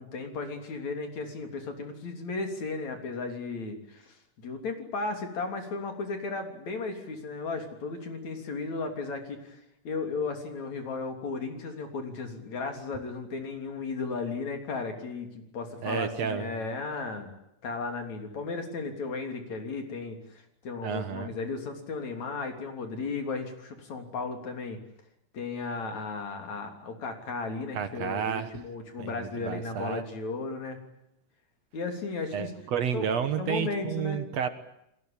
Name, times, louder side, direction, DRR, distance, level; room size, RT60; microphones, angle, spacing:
voice 1, 0.0-9.6 9.8-17.3 17.6-24.8 25.3-30.8 31.7-32.5 32.9-33.1 33.4-34.2, left 4 dB, 60° left, 5 dB, 4.6 m, -35 dB
voice 2, 15.8-16.5 20.8-21.3 27.7-28.5 29.0-30.0 32.3-34.5, right 8 dB, 60° right, 10 dB, 2.4 m, -31 dB
30.0 x 20.0 x 8.8 m, 0.81 s
omnidirectional pair, 3.6 m